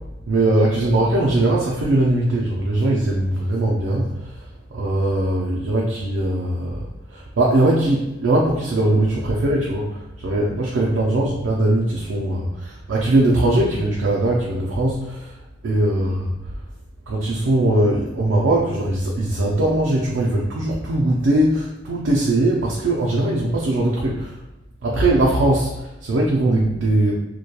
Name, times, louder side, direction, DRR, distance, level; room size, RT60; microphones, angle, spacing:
voice 1, 0.3-4.4 4.7-15.4 15.6-16.5 17.1-24.4 24.8-27.2, right 1 dB, 85° right, -3 dB, 0.4 m, -20 dB
2.8 x 2.2 x 2.2 m, 1.0 s
head